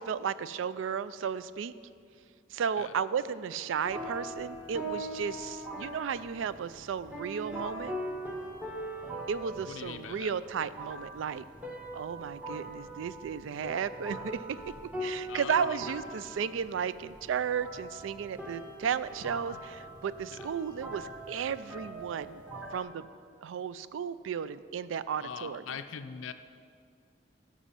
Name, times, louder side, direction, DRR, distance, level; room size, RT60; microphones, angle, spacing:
voice 1, 0.0-1.7 2.5-7.9 9.3-11.4 11.9-14.6 15.0-22.4 22.7-23.1 23.4-25.6, right 7 dB, 80° right, 16 dB, 0.3 m, -34 dB
sound 1, 3.8-22.8, right 1 dB, 10° right, 1.0 m, -42 dB
voice 2, 9.7-10.3 15.3-15.9 19.5-19.6 20.3-20.5 25.2-26.3, left 7 dB, 90° left, 9 dB, 0.4 m, -42 dB
11.0 x 6.2 x 5.6 m, 2.2 s
head